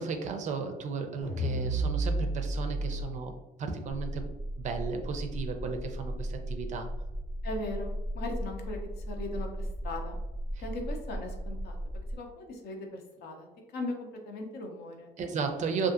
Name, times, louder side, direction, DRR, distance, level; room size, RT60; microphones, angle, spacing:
voice 1, 0.0-3.3 3.6-4.3 4.6-6.9 15.2-15.9, right 5 dB, 45° right, 5 dB, 0.4 m, -34 dB
sound 1, 1.2-3.1, right 2 dB, 90° left, 1.5 m, -30 dB
sound 2, 3.9-12.2, equal, 15° left, 0.5 m, -37 dB
voice 2, 7.4-10.2 10.6-11.8 12.1-15.4, left 2 dB, 70° left, 3 dB, 0.6 m, -39 dB
2.5 x 2.5 x 2.4 m, 1.0 s
cardioid pair, 110°, 17 cm